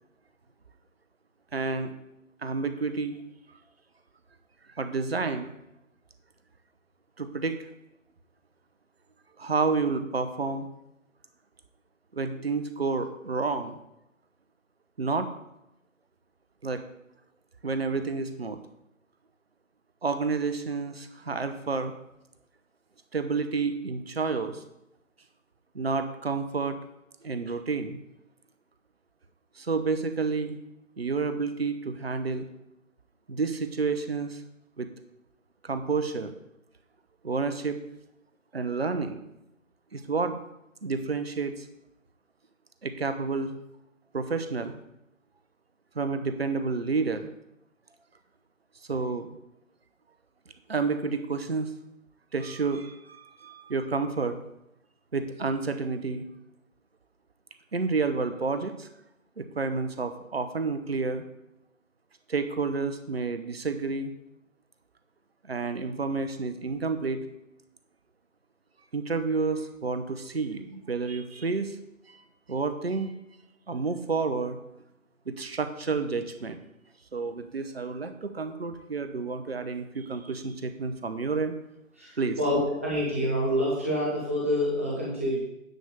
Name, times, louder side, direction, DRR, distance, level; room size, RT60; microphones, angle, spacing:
voice 1, 1.5-1.9 2.4-3.2 4.8-5.5 7.2-7.6 9.4-10.7 12.1-13.8 15.0-15.3 16.6-16.8 17.6-18.6 20.0-22.0 23.1-24.6 25.7-26.8 27.2-28.0 29.6-30.6 31.0-32.5 33.3-34.4 34.8-34.9 35.6-36.3 37.2-37.8 38.5-39.2 39.9-40.4 40.8-41.7 42.8-43.6 44.1-44.8 45.9-47.3 48.9-49.3 50.7-51.7 52.3-54.4 55.1-56.2 57.7-58.9 59.4-61.2 62.3-64.1 65.4-67.2 68.9-71.8 72.1-73.1 73.7-74.6 75.3-76.6 77.1-81.5 82.2-82.4, right 4 dB, 45° right, 9 dB, 0.9 m, -30 dB
voice 2, 82.0-85.4, equal, 10° right, -6 dB, 1.1 m, -27 dB
10.0 x 3.6 x 6.8 m, 0.86 s
figure-of-eight pair, 165°, 41 cm